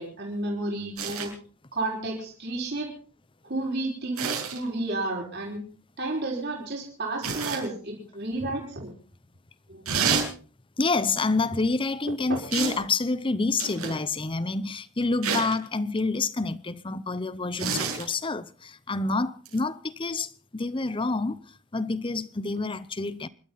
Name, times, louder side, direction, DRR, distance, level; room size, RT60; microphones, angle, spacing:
voice 1, 0.0-1.3 1.7-2.9 3.4-4.3 4.5-5.6 6.0-8.9 9.7-10.0 12.3-12.4, right 2 dB, 50° right, 5.5 m, -31 dB
sound 1, 1.0-1.3 4.2-4.6 7.2-7.6 9.9-10.3 12.5-12.8 13.6-14.0 15.2-15.6 17.6-18.0 19.5-19.6, right 6 dB, 80° right, 7.0 m, -28 dB
voice 2, 10.8-21.4 21.7-23.3, left 3 dB, 25° left, 0.7 m, -28 dB
28.0 x 12.5 x 4.1 m
head